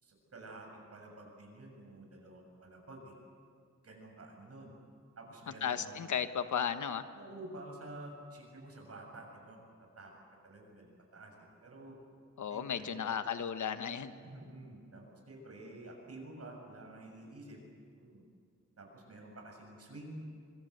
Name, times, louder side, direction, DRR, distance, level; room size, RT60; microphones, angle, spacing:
voice 1, 0.0-3.1 3.8-4.7 5.2-6.0 7.1-9.6 10.0-10.1 10.4-11.3 11.6-11.9 12.5-12.9 14.2-17.6 17.9-18.2 18.8-20.2, right 2 dB, 55° right, 1 dB, 7.0 m, -50 dB
voice 2, 5.6-7.1 12.4-14.1, left 7 dB, 90° left, 10 dB, 1.3 m, -34 dB
25.0 x 24.5 x 8.1 m, 2.2 s
wide cardioid pair, 100°, 29 cm